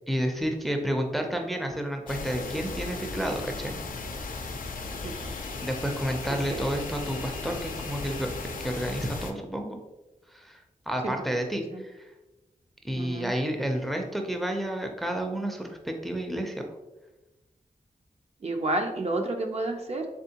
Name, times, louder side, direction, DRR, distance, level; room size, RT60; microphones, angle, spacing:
voice 1, 0.1-3.8 5.6-8.3 8.6-9.8 10.3-12.1 12.8-16.6, equal, ahead, 3 dB, 0.5 m, -30 dB
sound 1, 2.1-9.3, left 3 dB, 80° left, 0.4 m, -36 dB
sound 2, 4.6-9.0, left 2 dB, 40° left, 0.6 m, -48 dB
voice 2, 12.9-13.3 18.4-20.1, right 2 dB, 50° right, 3 dB, 0.5 m, -30 dB
3.6 x 3.5 x 2.8 m, 1.1 s
wide cardioid pair, 80°, 14 cm